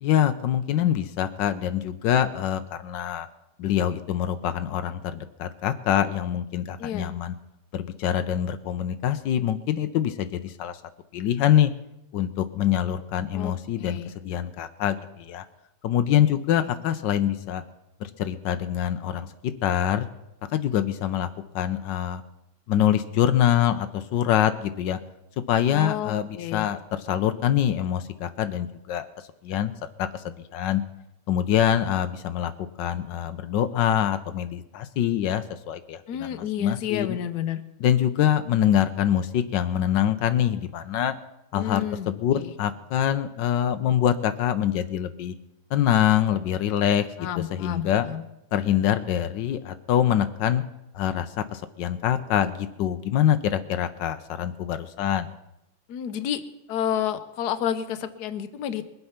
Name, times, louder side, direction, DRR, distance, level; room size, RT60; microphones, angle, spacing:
voice 1, 0.0-3.3 3.6-7.3 7.7-10.8 11.1-11.7 12.1-15.4 15.8-17.6 18.0-19.3 19.6-20.1 20.5-21.3 21.5-22.2 22.7-25.0 25.5-29.1 29.4-29.7 30.0-30.8 31.3-32.5 32.8-37.2 37.8-41.1 41.5-45.3 45.7-48.1 48.5-50.6 50.9-55.3, left 10 dB, 85° left, 10 dB, 1.4 m, -25 dB
voice 2, 6.8-7.1 13.3-13.5 13.8-14.1 16.6-16.7 25.7-26.7 36.1-37.6 41.5-42.5 47.2-48.2 55.9-56.4 56.7-58.9, left 10 dB, 65° left, 10 dB, 1.3 m, -30 dB
21.5 x 8.0 x 5.7 m, 0.85 s
omnidirectional pair, 1.9 m